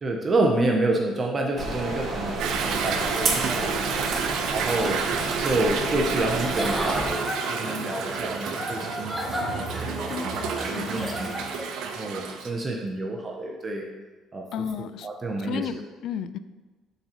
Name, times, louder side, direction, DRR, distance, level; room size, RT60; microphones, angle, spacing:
voice 1, 0.0-4.0 4.5-5.0 5.4-11.3 11.8-13.9 14.3-14.5 15.0-15.7, right 2 dB, 20° right, 1 dB, 0.6 m, -28 dB
sound 1, 1.6-7.1, right 3 dB, 40° right, 1.1 m, -30 dB
Toilet flush / Drip / Trickle dribble, 2.4-12.5, right 6 dB, 70° right, 0.6 m, -30 dB
Giggle / Chuckle chortle, 6.3-11.8, equal, 5° right, 1.0 m, -33 dB
voice 2, 10.1-11.0 14.5-15.1 15.4-16.4, left 7 dB, 55° left, 12 dB, 0.3 m, -33 dB
10.5 x 3.9 x 2.9 m, 1.3 s
cardioid pair, 160°, 0 cm